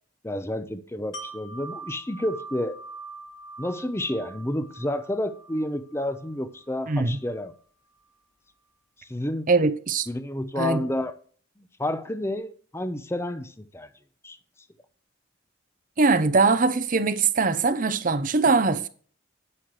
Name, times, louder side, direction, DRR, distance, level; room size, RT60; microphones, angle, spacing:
voice 1, 0.2-2.8 3.6-7.5 9.0-9.5 10.1-11.2 11.6-13.9 14.2-14.4, left 1 dB, 15° left, 0.7 m, -30 dB
Wind chime, 1.1-6.9 7.3-7.5, right 3 dB, 80° left, 2.2 m, -43 dB
voice 2, 6.9-7.2 9.5-10.1 10.6-10.8 16.0-18.9, right 4 dB, 45° right, 0.7 m, -22 dB
9.9 x 8.4 x 3.2 m
head